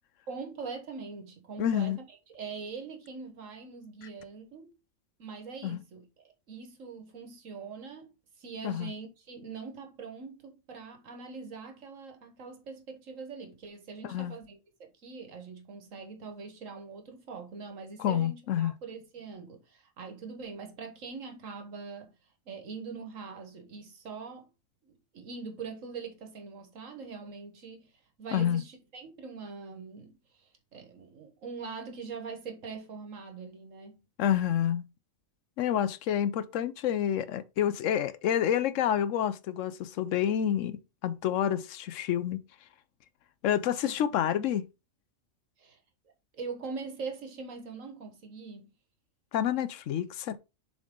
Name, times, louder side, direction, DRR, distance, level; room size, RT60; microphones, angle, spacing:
voice 1, 0.3-4.7 5.2-22.1 22.4-24.5 24.8-27.9 28.2-34.0 43.8-43.9 45.6-45.8 46.3-48.7, right 5 dB, 75° right, 1.7 m, -43 dB
voice 2, 1.6-2.0 5.6-5.8 8.6-8.9 14.0-14.4 18.0-18.8 28.3-28.6 34.2-34.9 35.6-42.4 43.4-44.7 49.3-50.4, left 10 dB, 75° left, 0.9 m, -28 dB
7.2 x 3.9 x 3.7 m
omnidirectional pair, 1.3 m